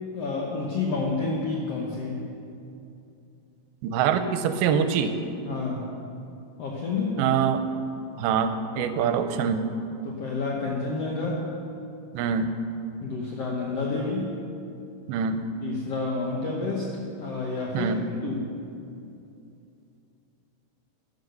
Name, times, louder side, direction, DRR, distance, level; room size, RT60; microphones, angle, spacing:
voice 1, 0.1-2.3 5.4-5.9 6.6-7.3 10.0-11.4 13.0-14.3 15.6-17.9 18.2-18.4, left 3 dB, 75° left, -2 dB, 1.4 m, -29 dB
voice 2, 3.8-5.1 7.2-7.6 8.2-9.7 12.1-12.5 15.1-15.4 17.7-18.0, right 7 dB, 85° right, 9 dB, 2.5 m, -24 dB
12.0 x 8.3 x 6.7 m, 2.7 s
omnidirectional pair, 4.4 m